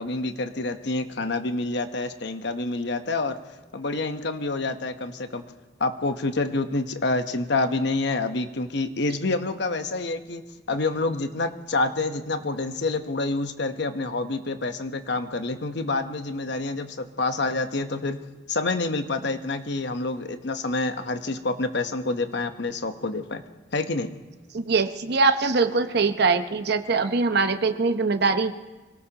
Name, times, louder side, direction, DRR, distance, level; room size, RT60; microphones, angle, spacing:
voice 1, 0.0-3.4 3.7-5.4 5.8-18.2 18.5-23.5 23.7-24.2, left 3 dB, 65° left, 8 dB, 1.0 m, -27 dB
voice 2, 24.5-28.5, right 4 dB, 60° right, 9 dB, 0.8 m, -22 dB
26.0 x 18.5 x 2.9 m, 1.3 s
head